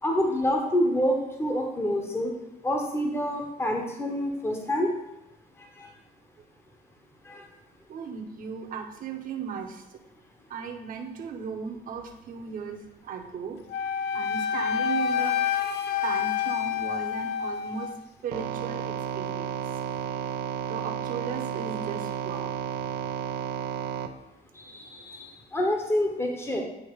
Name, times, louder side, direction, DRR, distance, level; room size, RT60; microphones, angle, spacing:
voice 1, 0.0-2.3 2.6-5.0 5.8-5.9 7.2-7.5 24.5-26.6, equal, 15° left, 2 dB, 1.0 m, -27 dB
voice 2, 7.9-10.0 10.5-13.6 14.1-15.4 16.0-17.9 18.2-19.6 20.7-22.5 24.7-24.8, right 6 dB, 55° right, 2 dB, 1.0 m, -36 dB
Wind instrument woodwind instrument, 13.7-18.0, left 8 dB, 75° left, 0.4 m, -28 dB
sound 1, 18.3-24.1, right 8 dB, 85° right, 0.5 m, -32 dB
8.7 x 2.9 x 4.7 m, 0.92 s
cardioid pair, 110°, 17 cm